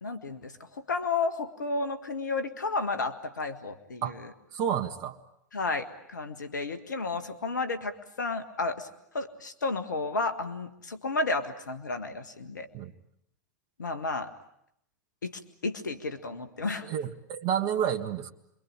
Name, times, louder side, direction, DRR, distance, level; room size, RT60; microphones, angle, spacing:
voice 1, 0.0-4.3 5.5-8.9 9.1-12.7 13.8-14.3 15.2-16.9, left 3 dB, 85° left, 10 dB, 1.6 m, -32 dB
voice 2, 4.5-5.2 12.7-12.9 16.9-18.3, right 9 dB, 45° right, 4 dB, 1.8 m, -30 dB
28.0 x 22.5 x 8.8 m, 0.76 s
hypercardioid pair, 95°, 10 cm